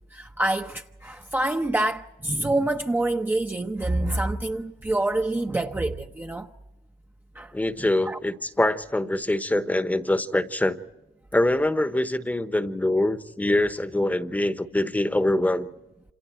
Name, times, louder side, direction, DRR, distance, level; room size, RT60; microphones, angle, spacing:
voice 1, 0.1-6.5 7.3-7.5 7.8-8.2, right 2 dB, 10° right, 0.8 m, -27 dB
voice 2, 7.5-10.8 11.3-15.7, left 1 dB, 10° left, 1.1 m, -24 dB
28.0 x 27.0 x 4.5 m
cardioid pair, 110°, 17 cm